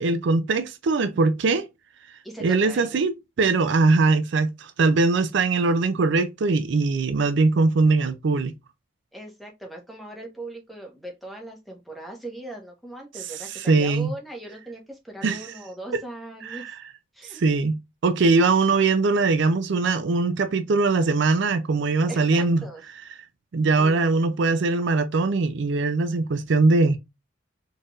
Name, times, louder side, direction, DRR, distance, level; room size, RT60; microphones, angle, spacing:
voice 1, 0.0-1.7 2.4-3.1 3.4-8.5 13.5-14.1 15.2-15.5 15.9-16.0 16.4-16.7 17.4-22.7 23.5-27.0, right 3 dB, 60° right, 0.4 m, -21 dB
voice 2, 2.2-3.0 9.1-16.8 17.1-17.4 22.1-22.8 23.8-24.0, right 2 dB, ahead, 1.0 m, -39 dB
4.3 x 3.3 x 2.4 m
head